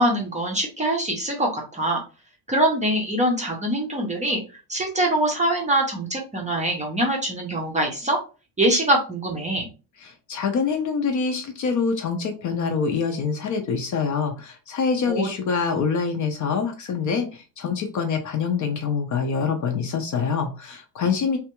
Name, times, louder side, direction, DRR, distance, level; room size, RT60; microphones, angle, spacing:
voice 1, 0.0-2.0 2.5-4.4 4.7-8.2 8.6-9.7 15.1-15.3, right 1 dB, 15° right, 0 dB, 0.5 m, -23 dB
voice 2, 10.0-21.4, left 5 dB, 40° left, 5 dB, 0.5 m, -25 dB
3.2 x 2.3 x 2.9 m, 0.33 s
cardioid pair, 165°, 49 cm